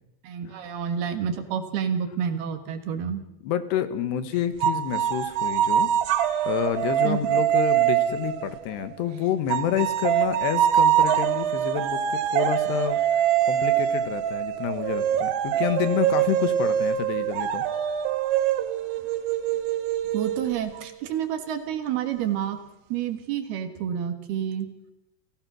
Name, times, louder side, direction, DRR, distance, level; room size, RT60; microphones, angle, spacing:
voice 1, 0.2-3.2 7.0-7.4 20.1-22.6 22.9-24.7, right 8 dB, 65° right, 9 dB, 3.3 m, -29 dB
voice 2, 3.4-5.9 6.5-13.0 13.5-17.6, left 10 dB, 75° left, 12 dB, 3.2 m, -28 dB
sound 1, 4.6-9.0 9.5-20.9, right 10 dB, 85° right, 3.4 m, -24 dB
29.5 x 16.5 x 6.2 m, 0.87 s
omnidirectional pair, 5.1 m